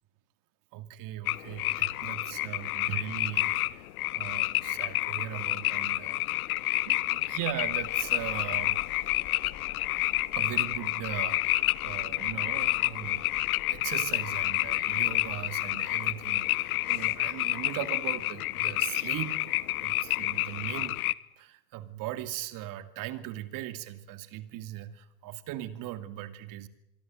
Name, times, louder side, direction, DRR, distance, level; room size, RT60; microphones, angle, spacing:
voice 1, 0.7-6.2 6.8-9.1 10.3-13.4 13.7-21.0 21.4-26.7, right 13 dB, 45° right, 10 dB, 2.6 m, -39 dB
sound 1, 1.3-21.1, left 17 dB, 65° left, 1.2 m, -29 dB
sound 2, 6.8-16.1, left 10 dB, 35° left, 4.0 m, -51 dB
25.5 x 23.5 x 7.9 m, 0.85 s
hypercardioid pair, 100°, 47 cm